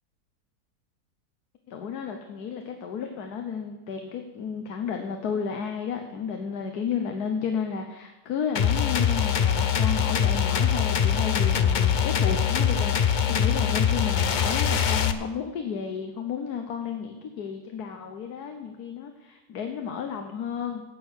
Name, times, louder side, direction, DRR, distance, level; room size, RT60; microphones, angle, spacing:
voice 1, 1.7-20.8, left 6 dB, 80° left, 4 dB, 1.5 m, -32 dB
sound 1, 8.6-15.1, left 8 dB, 60° left, 0.5 m, -23 dB
12.5 x 8.6 x 6.4 m, 1.1 s
omnidirectional pair, 1.6 m